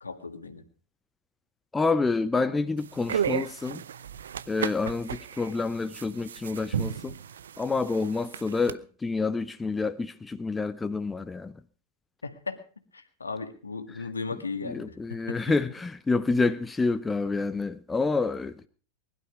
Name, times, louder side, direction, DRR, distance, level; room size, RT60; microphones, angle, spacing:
voice 1, 0.0-0.6 12.2-12.6 12.9-15.4, left 4 dB, 75° left, 1.8 m, -36 dB
voice 2, 1.7-3.8 4.5-7.1 7.6-11.5 14.6-18.7, left 3 dB, 10° left, 0.7 m, -28 dB
sound 1, 2.8-8.7, right 8 dB, 65° right, 0.6 m, -34 dB
20.0 x 12.0 x 4.9 m
figure-of-eight pair, 90°, 0 cm